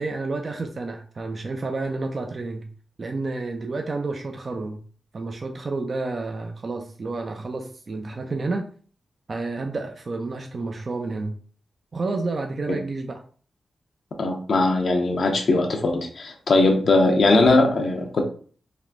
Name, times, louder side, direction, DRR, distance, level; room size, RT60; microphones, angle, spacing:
voice 1, 0.0-2.7 3.0-4.8 5.1-8.7 9.3-11.4 11.9-13.2, right 3 dB, 55° right, 3 dB, 0.4 m, -30 dB
voice 2, 14.2-18.2, left 2 dB, 65° left, 3 dB, 0.5 m, -20 dB
3.4 x 2.3 x 2.5 m, 0.43 s
supercardioid pair, 45°, 0 cm